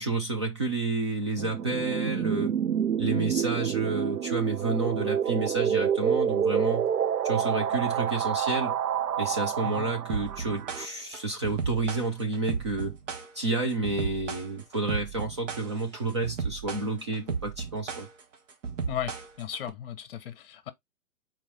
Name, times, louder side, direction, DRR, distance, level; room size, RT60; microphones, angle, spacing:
voice 1, 0.0-2.6 3.0-6.9 7.2-8.7 9.2-13.0 13.3-18.1, right 3 dB, 20° right, 0.4 m, -30 dB
sound 1, 1.4-10.9, right 8 dB, 85° right, 0.6 m, -28 dB
sound 2, 10.1-19.7, right 5 dB, 50° right, 1.3 m, -35 dB
voice 2, 18.9-20.7, left 10 dB, 40° left, 0.9 m, -36 dB
4.3 x 3.0 x 3.8 m
figure-of-eight pair, 125°, 45 cm